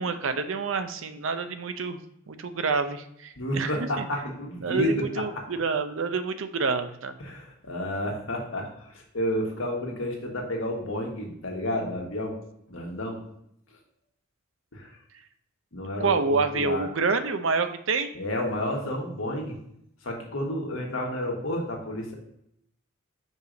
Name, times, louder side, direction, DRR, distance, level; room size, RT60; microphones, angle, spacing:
voice 1, 0.0-2.0 2.3-4.0 4.6-7.1 16.0-18.1, right 4 dB, 70° right, 9 dB, 0.6 m, -27 dB
voice 2, 3.4-5.4 7.2-12.4 12.7-13.2 14.7-14.9 15.7-16.9 18.1-19.6 20.0-22.1, left 1 dB, 80° left, 0 dB, 1.6 m, -31 dB
5.3 x 4.8 x 3.9 m, 0.74 s
head